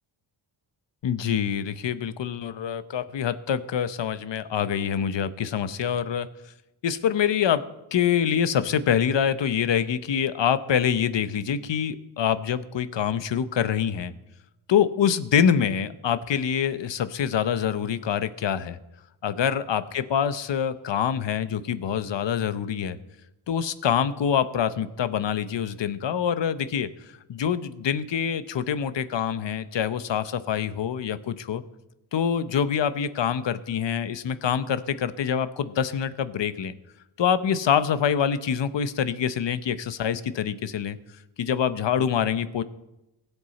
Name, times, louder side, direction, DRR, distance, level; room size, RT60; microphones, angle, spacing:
voice 1, 1.0-6.3 6.8-7.6 7.9-14.1 14.7-18.8 19.2-23.0 23.5-26.9 27.3-31.6 32.1-36.7 37.2-41.0 41.4-42.6, left 8 dB, 65° left, 13 dB, 0.9 m, -25 dB
21.5 x 8.1 x 4.2 m, 0.93 s
wide cardioid pair, 100°, 48 cm